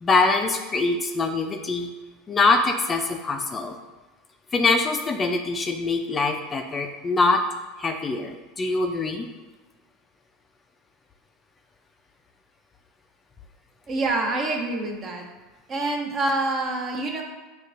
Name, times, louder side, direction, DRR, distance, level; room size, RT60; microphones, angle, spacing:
voice 1, 0.0-1.9 2.3-3.8 4.5-7.4 7.8-9.3, left 3 dB, 25° left, 4 dB, 0.4 m, -23 dB
voice 2, 13.9-15.3 15.7-17.2, right 2 dB, 40° right, 1 dB, 0.8 m, -26 dB
6.5 x 2.4 x 2.5 m, 1.2 s
hypercardioid pair, 100°, 0 cm